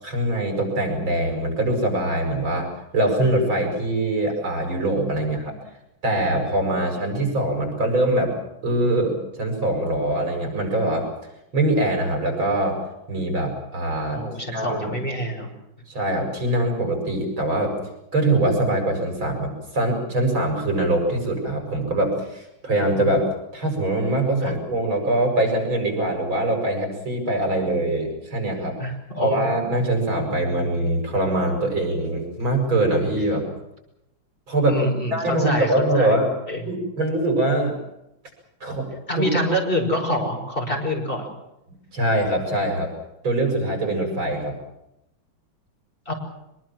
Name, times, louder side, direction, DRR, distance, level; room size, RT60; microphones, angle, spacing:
voice 1, 0.0-2.7 2.9-5.5 6.0-8.3 8.6-11.1 11.5-12.8 13.1-14.2 14.5-14.9 15.9-17.7 18.1-23.2 23.5-28.8 29.1-33.4 34.5-34.8 35.1-36.3 36.7-37.8 38.6-38.9 39.2-39.3 41.9-42.9 43.2-44.5, right 1 dB, 75° right, 2 dB, 8.1 m, -23 dB
voice 2, 5.2-5.6 7.1-7.3 14.1-15.5 24.4-24.5 28.8-29.5 34.7-36.2 36.5-36.6 39.1-41.3 46.1-46.2, equal, 25° left, 1 dB, 5.7 m, -26 dB
24.5 x 22.0 x 7.6 m, 0.86 s
omnidirectional pair, 2.2 m